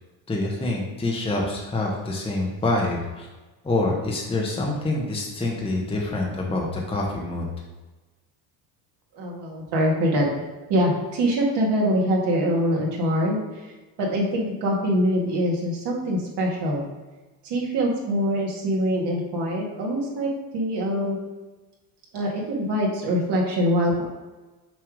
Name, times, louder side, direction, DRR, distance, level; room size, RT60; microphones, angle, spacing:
voice 1, 0.3-3.3 3.6-7.5, left 2 dB, 10° left, -1 dB, 1.0 m, -26 dB
voice 2, 9.1-10.3 10.7-13.4 14.0-16.8 17.4-21.2 22.1-24.0, equal, 55° right, -2 dB, 1.9 m, -24 dB
6.1 x 3.5 x 4.9 m, 1.2 s
supercardioid pair, 100°, 48 cm